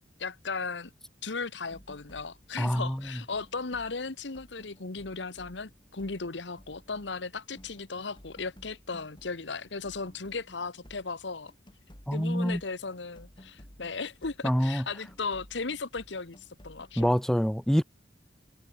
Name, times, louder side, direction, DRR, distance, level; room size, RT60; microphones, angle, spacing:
voice 1, 0.2-0.9 1.2-11.5 12.1-17.2, left 4 dB, 75° left, 1.3 m, -36 dB
sound 1, 1.7-9.4 9.6-17.1, equal, 25° left, 3.0 m, -55 dB
voice 2, 2.6-3.2 12.1-12.6 14.4-14.9 17.0-17.8, equal, 5° left, 1.1 m, -26 dB
head